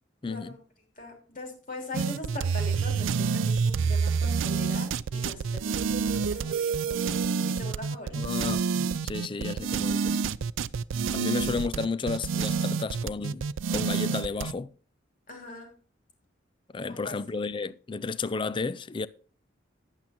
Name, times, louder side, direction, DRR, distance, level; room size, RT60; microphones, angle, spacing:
voice 1, 0.2-0.5 8.2-8.7 9.0-10.2 11.1-14.7 16.7-19.1, left 4 dB, 25° left, 0.4 m, -32 dB
voice 2, 1.0-8.2 15.3-15.7 16.9-17.2, left 2 dB, 45° left, 3.2 m, -41 dB
sound 1, 1.9-14.5, right 5 dB, 85° right, 0.4 m, -28 dB
10.5 x 8.4 x 4.3 m
head